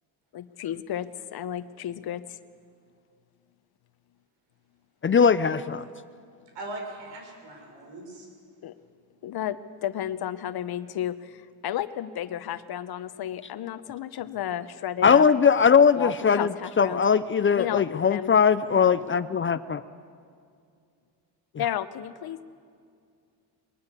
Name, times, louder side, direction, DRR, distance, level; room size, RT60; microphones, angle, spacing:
voice 1, 0.3-2.4 8.6-8.7 9.2-15.3 15.9-17.0 17.5-17.8 18.1-18.3 18.8-18.9 21.5-22.4, left 11 dB, 60° left, 13 dB, 1.0 m, -33 dB
voice 2, 5.0-5.8 15.0-19.8, left 6 dB, 30° left, 14 dB, 0.6 m, -20 dB
voice 3, 6.6-8.3 18.6-18.9, right 2 dB, 75° right, 2 dB, 6.8 m, -40 dB
21.5 x 20.5 x 8.4 m, 2.3 s
cardioid pair, 105°, 43 cm